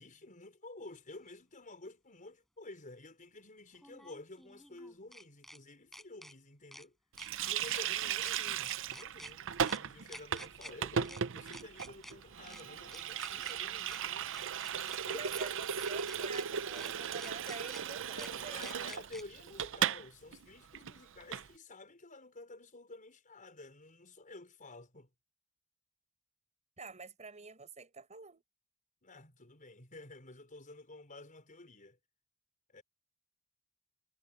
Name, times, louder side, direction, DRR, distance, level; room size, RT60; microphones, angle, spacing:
voice 1, 0.0-7.0 7.4-14.3 15.0-15.3 18.1-25.1 29.0-32.0 32.7-32.8, left 2 dB, 40° left, 5.2 m, -51 dB
sound 1, 1.3-1.4 3.7-5.6 5.9-6.3 6.7-6.9 7.2-7.8 8.2-8.3 8.6-9.3 9.7-9.8 10.1-10.7 11.0-11.2 11.5-12.1 12.5-12.6 12.9-13.5 13.9-14.0 14.3-15.0 15.3-15.5 15.8-16.4 16.8-16.9 17.2-17.8 18.2-18.3 18.6-19.2, equal, ahead, 5.0 m, -51 dB
Water tap faucet, 7.2-20.1 20.3-20.4 20.7-21.5, right 8 dB, 60° right, 0.7 m, -37 dB
voice 2, 15.1-18.6 26.8-28.4, right 4 dB, 35° right, 5.0 m, -47 dB
head